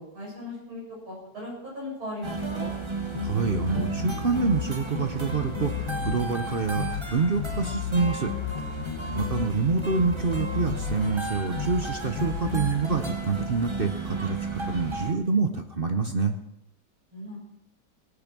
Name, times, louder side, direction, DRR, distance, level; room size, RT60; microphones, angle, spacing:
voice 1, 0.0-2.7 8.9-9.3 17.1-17.4, left 1 dB, 80° right, -5 dB, 8.5 m, -38 dB
sound 1, 2.2-15.1, right 2 dB, 15° right, 1.2 m, -34 dB
sound 2, 3.1-4.7 4.9-6.2 6.7-7.1 7.3-9.5 9.7-11.0 11.5-11.9 12.1-12.7, left 8 dB, 85° left, 2.0 m, -33 dB
voice 2, 3.2-8.3 9.1-16.4, right 4 dB, 45° right, 6 dB, 0.7 m, -27 dB
18.0 x 9.0 x 6.1 m, 0.81 s
omnidirectional pair, 2.2 m